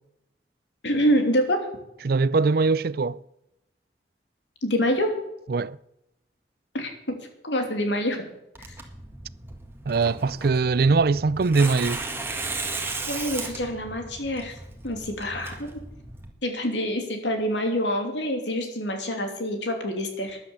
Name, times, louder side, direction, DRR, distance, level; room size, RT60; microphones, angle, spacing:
voice 1, 0.8-1.7 4.6-5.1 6.7-7.2 7.4-8.3 13.1-14.6 14.8-15.8 16.4-20.4, equal, 90° left, 3.0 m, -26 dB
voice 2, 2.0-3.2 5.5-5.8 9.9-12.0, right 4 dB, 55° right, 0.4 m, -22 dB
Tearing, 8.5-16.3, right 3 dB, 15° right, 1.9 m, -36 dB
13.5 x 10.5 x 7.1 m
head